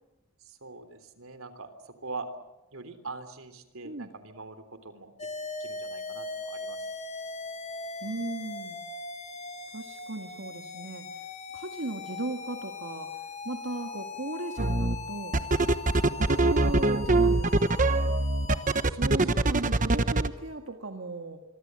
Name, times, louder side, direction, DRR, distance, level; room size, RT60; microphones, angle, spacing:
voice 1, 0.4-2.3 2.7-5.1 5.6-6.8 18.5-18.6 18.9-19.5, right 3 dB, 80° right, 10 dB, 3.4 m, -43 dB
sound 1, 5.2-18.9, left 3 dB, 30° left, 1.9 m, -40 dB
voice 2, 8.0-8.8 9.7-11.2 11.5-15.3 16.1-17.9 19.0-21.4, right 2 dB, 65° right, 4 dB, 1.9 m, -37 dB
sound 2, 14.6-15.0 15.3-20.3, right 2 dB, 40° right, 1.1 m, -23 dB
26.0 x 24.0 x 7.7 m, 1.0 s
head